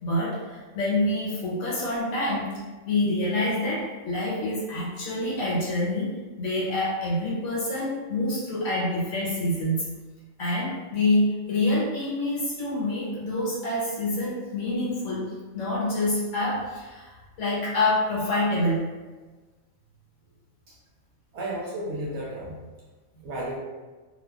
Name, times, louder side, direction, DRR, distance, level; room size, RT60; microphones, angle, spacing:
voice 1, 0.0-2.6 2.8-9.9 10.4-18.9 23.2-23.3, left 1 dB, 65° left, -7 dB, 1.2 m, -27 dB
voice 2, 21.3-22.6 23.2-23.6, right 1 dB, 65° right, -5 dB, 0.7 m, -33 dB
2.8 x 2.3 x 2.3 m, 1.3 s
omnidirectional pair, 1.5 m